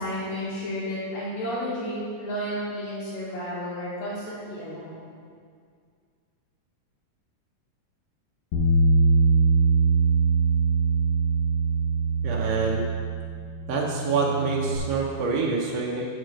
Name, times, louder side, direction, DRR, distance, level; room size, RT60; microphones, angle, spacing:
voice 1, 0.0-5.0, equal, 60° left, -10 dB, 2.7 m, -32 dB
Bass guitar, 8.5-14.8, right 3 dB, 80° left, 1.2 m, -23 dB
voice 2, 12.2-12.8 13.7-16.1, right 4 dB, 70° right, -2 dB, 1.7 m, -26 dB
7.8 x 5.1 x 6.3 m, 2.1 s
omnidirectional pair, 3.8 m